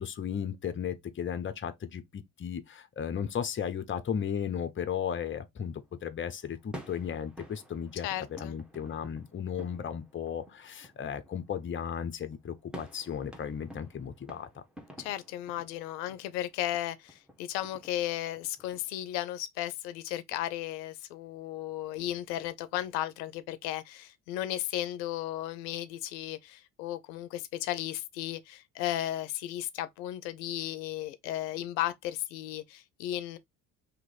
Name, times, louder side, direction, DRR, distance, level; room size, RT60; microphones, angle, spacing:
voice 1, 0.0-8.1 8.4-14.6, left 8 dB, 25° left, 0.7 m, -35 dB
sound 1, 5.6-18.9, equal, ahead, 1.0 m, -51 dB
voice 2, 8.0-8.6 15.0-33.4, left 13 dB, 85° left, 0.5 m, -35 dB
3.0 x 2.9 x 3.8 m
hypercardioid pair, 55°, 49 cm